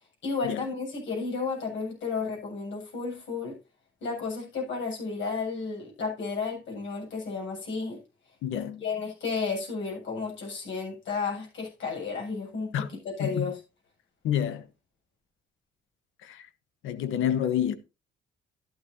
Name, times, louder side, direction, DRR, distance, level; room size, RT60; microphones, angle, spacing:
voice 1, 0.2-3.6 4.0-8.0 8.8-12.7 13.0-13.6, left 4 dB, 70° left, 8.0 m, -32 dB
voice 2, 8.4-8.8 12.7-12.9 13.2-13.5 14.2-14.6 16.2-16.4 16.8-17.7, left 10 dB, 90° left, 1.2 m, -28 dB
11.5 x 11.5 x 2.8 m
cardioid pair, 90°, 20 cm